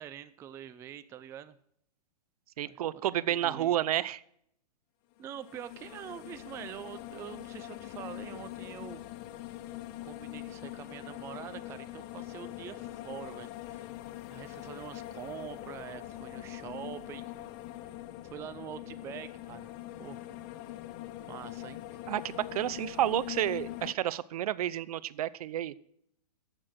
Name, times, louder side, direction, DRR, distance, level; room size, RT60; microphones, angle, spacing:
voice 1, 0.0-1.6 2.6-3.0 3.3-3.8 5.2-9.1 10.0-13.9 14.3-17.3 18.3-19.7 20.0-20.2 21.2-21.8, right 10 dB, 15° right, 12 dB, 0.3 m, -45 dB
voice 2, 2.6-4.2 22.1-25.7, right 12 dB, 60° right, 18 dB, 0.6 m, -30 dB
sound 1, 5.2-23.9, left 14 dB, 35° left, 0.6 m, -43 dB
11.5 x 7.7 x 6.5 m, 0.71 s
hypercardioid pair, 130°, 21 cm